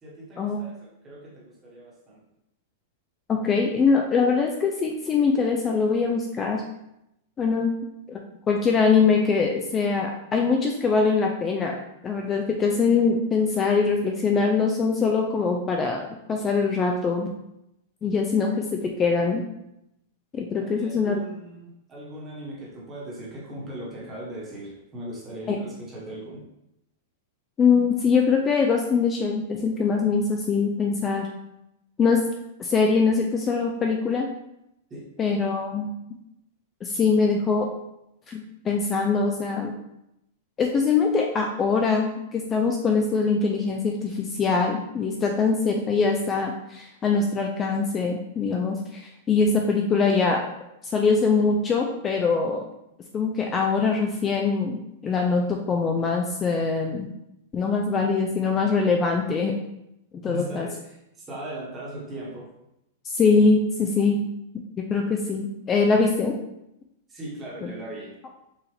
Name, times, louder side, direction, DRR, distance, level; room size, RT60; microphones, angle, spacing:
voice 1, 0.0-2.2 20.6-26.4 34.9-35.1 60.3-62.5 67.1-68.1, right 1 dB, 20° right, -4 dB, 1.3 m, -39 dB
voice 2, 3.3-6.6 7.4-7.7 8.1-11.8 12.0-17.3 18.0-19.4 20.3-21.2 25.5-25.6 27.6-31.3 32.0-32.2 32.6-34.3 35.2-35.9 36.8-37.7 38.3-39.7 40.6-50.4 50.9-52.6 53.1-57.1 57.5-59.5 60.2-60.7 63.0-64.2 64.9-66.4 67.6-67.7, left 4 dB, 20° left, 2 dB, 0.3 m, -23 dB
4.7 x 2.4 x 3.2 m, 0.85 s
supercardioid pair, 145°, 0 cm